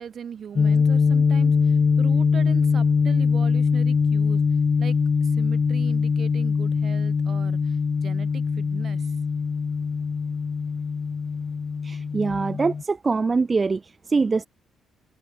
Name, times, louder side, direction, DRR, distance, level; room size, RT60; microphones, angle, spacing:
voice 1, 0.0-4.5 4.8-9.2, right 8 dB, 55° right, 5.3 m, -39 dB
sound 1, 0.6-12.8, left 5 dB, 40° left, 0.5 m, -22 dB
voice 2, 11.8-14.5, right 4 dB, 30° right, 1.8 m, -24 dB
cardioid pair, 90°, 0 cm